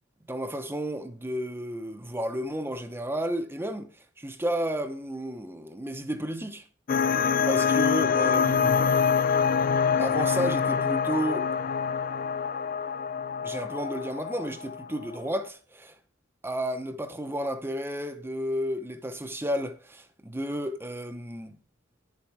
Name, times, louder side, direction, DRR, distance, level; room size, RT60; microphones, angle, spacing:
voice 1, 0.3-3.9 4.2-6.6 7.4-9.0 10.0-11.5 13.4-15.9 16.4-21.6, equal, 10° right, 0.8 m, -32 dB
sound 1, 6.9-15.2, left 6 dB, 45° left, 0.5 m, -25 dB
10.5 x 7.1 x 4.8 m
head